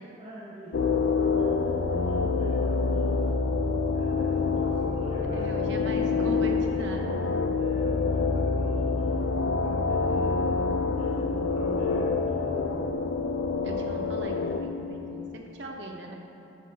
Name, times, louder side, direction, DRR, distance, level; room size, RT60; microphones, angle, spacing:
voice 1, 0.2-3.4 3.9-7.1 7.5-10.4 10.9-12.7, equal, 30° right, -8 dB, 1.2 m, -42 dB
sound 1, 0.7-14.6, left 4 dB, 85° left, 0.6 m, -26 dB
voice 2, 5.3-7.4 13.6-16.2, right 2 dB, 65° right, 1 dB, 0.8 m, -39 dB
12.5 x 5.6 x 2.8 m, 2.9 s
head